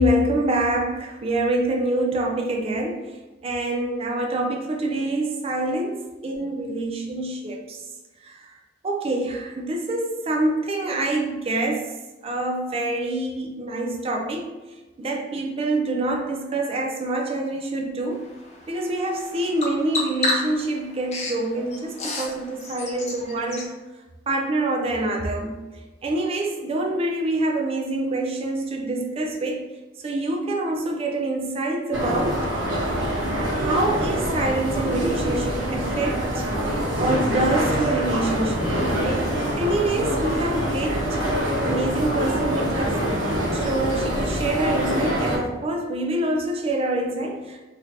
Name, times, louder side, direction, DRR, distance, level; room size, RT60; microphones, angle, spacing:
voice 1, 0.0-3.1 3.4-7.8 8.2-8.4 8.8-11.9 12.2-14.5 15.0-18.2 18.7-23.7 24.3-25.6 26.0-29.6 30.0-32.5 33.5-36.5 37.0-41.3 41.6-43.1 43.6-47.7, right 2 dB, 30° right, 1 dB, 0.4 m, -26 dB
Bird vocalization bird call bird song, 18.1-23.7, left 2 dB, 35° left, 0.6 m, -32 dB
sound 1, 31.9-45.4, equal, 90° right, 1.0 m, -25 dB
3.1 x 2.9 x 2.5 m, 1.2 s
head